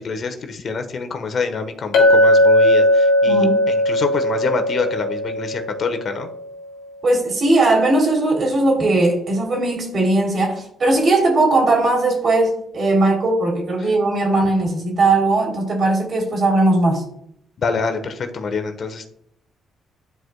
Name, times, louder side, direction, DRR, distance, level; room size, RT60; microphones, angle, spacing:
voice 1, 0.0-6.3 13.8-13.9 17.6-19.1, left 4 dB, 50° left, 7 dB, 1.1 m, -26 dB
Chink clink, 1.9-6.4, left 1 dB, 80° left, 2.6 m, -17 dB
voice 2, 3.2-3.6 7.0-17.0, right 2 dB, 50° right, 1 dB, 3.0 m, -18 dB
12.0 x 4.7 x 2.2 m, 0.71 s
cardioid pair, 90°, 0 cm